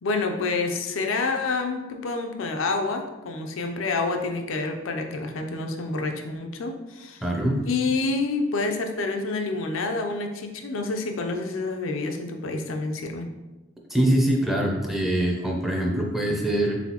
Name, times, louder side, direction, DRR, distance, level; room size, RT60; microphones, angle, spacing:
voice 1, 0.0-7.2 7.6-13.3, left 3 dB, 85° left, 4 dB, 0.5 m, -28 dB
voice 2, 7.2-7.6 13.9-16.8, right 1 dB, ahead, -1 dB, 0.5 m, -23 dB
4.1 x 3.9 x 2.9 m, 1.1 s
head